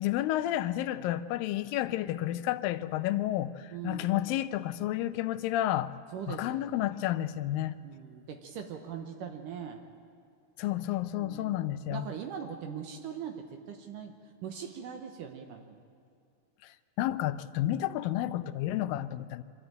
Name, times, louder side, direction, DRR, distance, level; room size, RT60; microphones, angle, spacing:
voice 1, 0.0-5.9 6.3-7.8 10.6-12.1 16.6-19.4, left 13 dB, 85° left, 2.4 m, -31 dB
voice 2, 3.7-4.1 6.1-6.7 7.8-9.8 11.2-14.2 14.4-15.8, right 7 dB, 75° right, 2.5 m, -41 dB
25.5 x 13.0 x 8.9 m
omnidirectional pair, 4.0 m